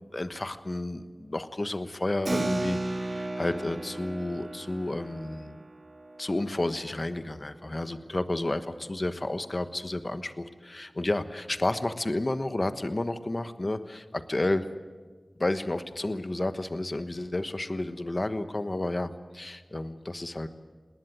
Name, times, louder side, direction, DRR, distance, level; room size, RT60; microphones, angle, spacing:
voice 1, 0.1-5.6 6.2-14.6 15.4-20.5, left 2 dB, 45° left, 10 dB, 1.2 m, -31 dB
Keyboard (musical), 2.3-8.3, right 2 dB, 65° right, 2.3 m, -35 dB
20.0 x 19.0 x 9.2 m, 1.4 s
wide cardioid pair, 65°, 0 cm